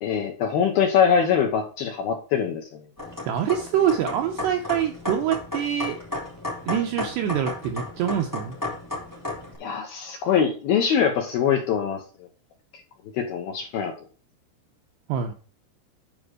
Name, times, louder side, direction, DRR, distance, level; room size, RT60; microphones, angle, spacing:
voice 1, 0.0-2.8 9.6-12.3 13.1-13.9, left 7 dB, 75° left, 2 dB, 2.3 m, -23 dB
sound 1, 3.0-9.6, left 2 dB, 5° left, 3.3 m, -34 dB
voice 2, 3.3-6.0 6.7-8.6 15.1-15.3, right 9 dB, 85° right, 4 dB, 2.4 m, -25 dB
9.6 x 5.2 x 4.8 m, 0.38 s
omnidirectional pair, 5.8 m